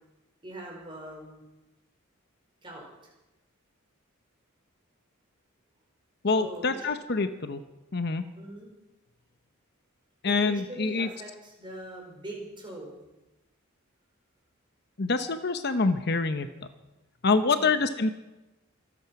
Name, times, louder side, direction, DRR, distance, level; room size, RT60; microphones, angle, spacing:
voice 1, 0.4-1.4 2.6-2.8 6.3-6.9 8.4-8.7 10.2-13.0 17.5-17.8, right 1 dB, 20° right, -1 dB, 4.9 m, -42 dB
voice 2, 6.2-7.6 7.9-8.2 10.2-11.1 15.0-16.5 17.2-18.1, left 3 dB, 50° left, 9 dB, 0.9 m, -26 dB
25.5 x 9.1 x 6.0 m, 1.0 s
head